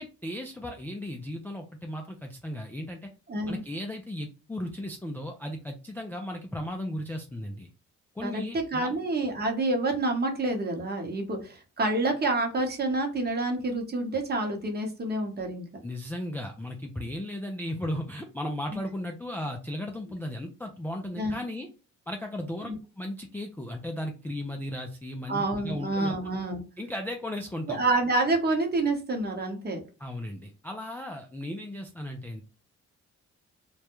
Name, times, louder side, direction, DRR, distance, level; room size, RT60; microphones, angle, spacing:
voice 1, 0.0-3.1 3.5-7.7 8.2-8.9 15.8-21.7 22.1-22.7 23.0-26.2 26.8-27.8 30.0-32.4, left 1 dB, 5° left, 2 dB, 0.3 m, -36 dB
voice 2, 3.3-3.6 8.2-15.6 21.2-21.4 22.6-22.7 25.3-26.6 27.7-29.8, right 2 dB, 35° right, 2 dB, 0.9 m, -28 dB
2.3 x 2.0 x 2.9 m, 0.33 s
cardioid pair, 90°, 30 cm